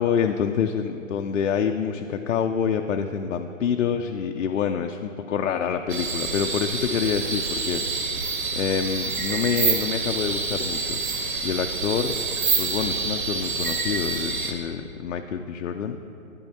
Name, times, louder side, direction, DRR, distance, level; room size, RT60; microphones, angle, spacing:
voice 1, 0.0-7.8 8.6-11.0 11.4-12.2 12.6-16.0, left 7 dB, 75° left, 5 dB, 0.5 m, -26 dB
sound 1, 5.9-14.5, right 4 dB, 40° right, 0.8 m, -27 dB
9.9 x 9.0 x 2.8 m, 2.9 s
hypercardioid pair, 145°, 40 cm